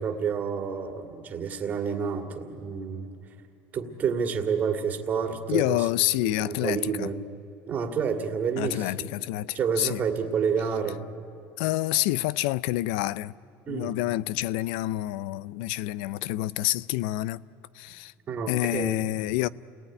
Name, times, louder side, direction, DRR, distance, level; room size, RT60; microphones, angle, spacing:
voice 1, 0.0-3.1 3.7-5.8 6.2-7.2 7.7-9.1 9.5-11.0 13.7-14.0 18.3-19.0, right 6 dB, 35° right, 2.2 m, -29 dB
voice 2, 5.5-7.1 8.6-10.0 11.6-13.3 13.7-17.4 17.7-18.1 18.5-19.5, left 16 dB, 85° left, 0.5 m, -28 dB
29.5 x 19.0 x 9.9 m
cardioid pair, 145°, 5 cm